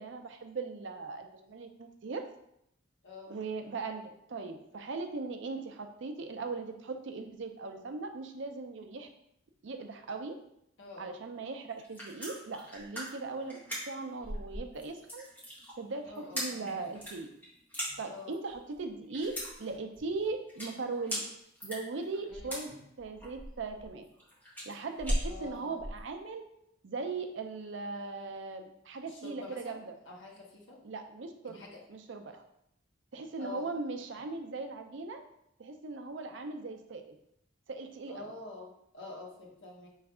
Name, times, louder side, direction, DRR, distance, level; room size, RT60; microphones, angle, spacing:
voice 1, 0.0-2.2 3.3-9.1 9.6-10.4 11.0-13.6 13.9-15.3 15.8-17.3 18.0-21.2 21.6-22.7 23.0-24.0 24.7-26.4 26.8-29.9 30.8-31.6 31.9-32.4 33.1-35.2 35.6-37.2 37.7-38.2, right 3 dB, 65° right, 6 dB, 0.5 m, -39 dB
voice 2, 3.0-3.4 10.8-11.1 16.0-16.8 18.1-18.3 22.3-22.5 25.2-25.8 29.0-29.8 30.0-30.8 31.4-31.9 33.4-33.7 38.1-39.9, left 3 dB, 65° left, -1 dB, 1.0 m, -47 dB
sound 1, 11.7-26.0, equal, 10° left, 1.3 m, -39 dB
3.4 x 3.2 x 4.8 m, 0.78 s
head